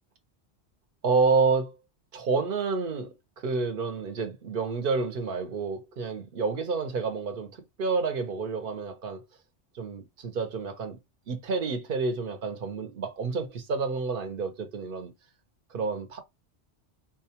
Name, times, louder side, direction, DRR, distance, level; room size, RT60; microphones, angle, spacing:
voice 1, 1.0-1.8 2.1-7.5 7.8-9.2 9.7-11.0 11.3-15.1 15.7-16.2, right 4 dB, 55° right, 0.9 m, -29 dB
4.0 x 2.3 x 2.8 m
omnidirectional pair, 1.2 m